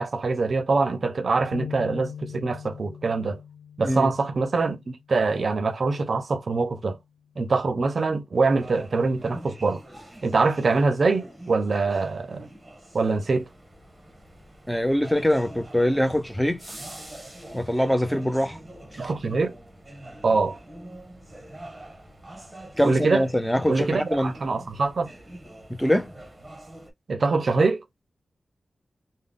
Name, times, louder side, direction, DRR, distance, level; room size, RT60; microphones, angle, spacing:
voice 1, 0.0-3.4 3.8-7.0 7.4-9.8 10.2-12.5 12.9-13.5 19.0-19.6 20.2-20.6 22.8-23.2 23.7-25.1 27.1-27.8, right 3 dB, 45° right, 0.5 m, -24 dB
sound 1, 1.5-5.0, left 8 dB, 70° left, 0.4 m, -40 dB
sound 2, 8.5-26.9, right 1 dB, 15° right, 0.9 m, -45 dB
voice 2, 14.7-16.6 17.5-18.6 18.9-19.1 22.8-24.3 25.7-26.1, equal, ahead, 0.4 m, -23 dB
3.7 x 2.0 x 3.5 m
wide cardioid pair, 165°, 0 cm